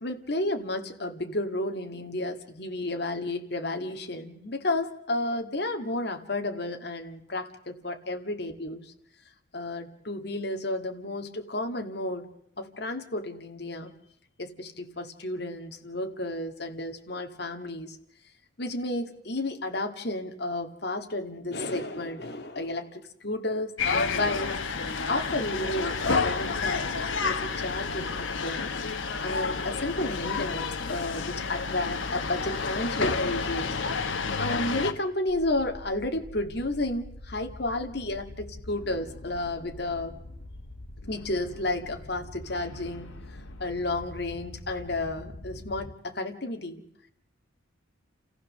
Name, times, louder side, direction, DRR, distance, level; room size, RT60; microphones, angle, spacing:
voice 1, 0.0-8.9 9.5-12.3 12.6-13.9 14.4-18.0 18.6-24.6 25.1-28.7 29.2-33.8 34.4-40.2 41.1-43.1 43.6-46.8, left 2 dB, 55° left, 4 dB, 1.9 m, -32 dB
sound 1, 23.8-34.9, left 4 dB, 75° left, 1.3 m, -30 dB
sound 2, 35.3-45.9, left 1 dB, 90° left, 1.7 m, -44 dB
29.0 x 15.0 x 6.6 m, 0.74 s
head